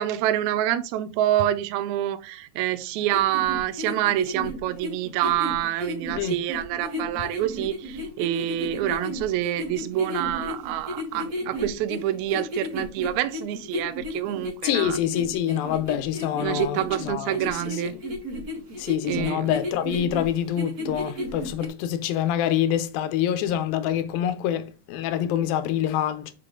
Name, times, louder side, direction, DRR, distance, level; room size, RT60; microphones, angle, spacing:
voice 1, 0.0-15.0 16.4-17.9 19.1-19.5, right 13 dB, 90° right, 1.6 m, -27 dB
sound 1, 3.1-21.7, left 1 dB, 50° right, 1.1 m, -33 dB
voice 2, 14.6-18.0 18.8-26.3, left 10 dB, 90° left, 2.5 m, -26 dB
6.7 x 4.6 x 3.7 m
omnidirectional pair, 4.0 m